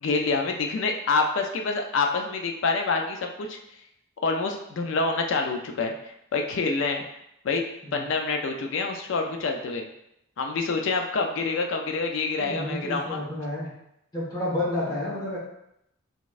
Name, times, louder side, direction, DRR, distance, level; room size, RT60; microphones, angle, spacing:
voice 1, 0.0-3.6 4.2-7.0 7.4-7.6 7.9-9.8 10.4-13.2, left 4 dB, 60° left, 3 dB, 0.4 m, -27 dB
voice 2, 12.4-13.7 14.1-15.4, left 1 dB, 20° left, -7 dB, 1.3 m, -30 dB
4.0 x 3.5 x 2.4 m, 0.80 s
head